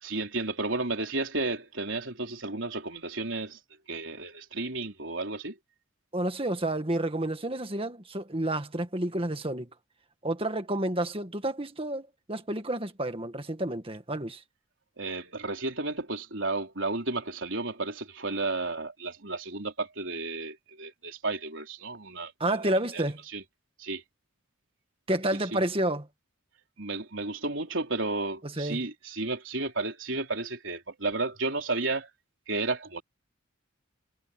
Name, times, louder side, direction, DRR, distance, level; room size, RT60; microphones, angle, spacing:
voice 1, 0.0-3.6 3.9-5.6 15.0-22.3 22.6-23.0 23.3-23.4 23.8-24.0 25.5-25.6 26.8-32.1 32.5-33.0, right 3 dB, 65° right, 3.9 m, -32 dB
voice 2, 6.1-9.7 10.2-14.4 22.4-23.2 25.1-26.1 28.6-28.8, right 1 dB, 25° right, 1.8 m, -30 dB
head